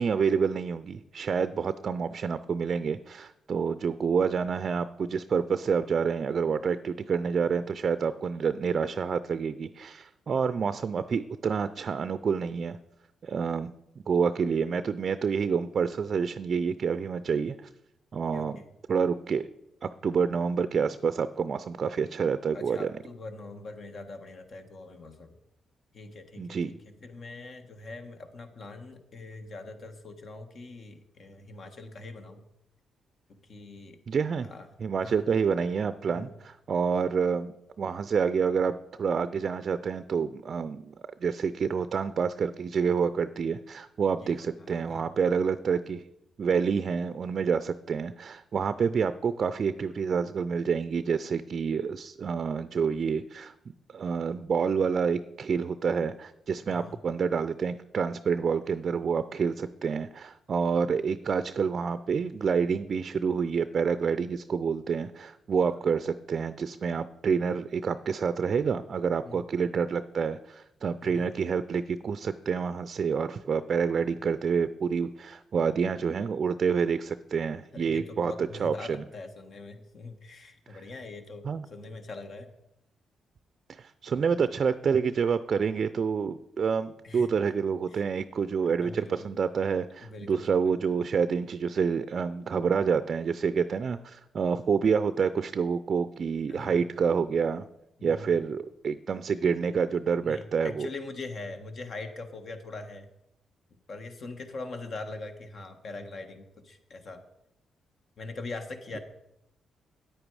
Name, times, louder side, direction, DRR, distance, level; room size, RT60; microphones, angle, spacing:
voice 1, 0.0-12.8 13.2-13.7 14.1-17.7 18.1-18.6 18.9-19.5 19.8-22.9 26.4-26.7 34.1-34.5 34.8-40.9 41.2-46.0 46.4-53.5 53.9-79.0 80.7-80.8 81.4-81.7 83.7-97.7 98.0-100.9, right 6 dB, 55° right, 13 dB, 0.4 m, -28 dB
voice 2, 18.3-18.6 22.5-25.3 25.9-32.4 33.3-34.0 34.4-34.7 35.0-35.2 36.1-36.3 44.2-45.1 56.7-57.0 65.7-65.8 69.2-69.5 71.0-71.3 77.7-82.5 87.0-87.3 87.9-88.1 88.8-89.3 90.0-90.7 96.5-96.8 98.0-98.3 100.2-103.1 103.9-107.2 108.2-109.0, left 3 dB, 60° left, 6 dB, 1.4 m, -42 dB
9.2 x 8.9 x 4.8 m, 0.83 s
supercardioid pair, 50°, 0 cm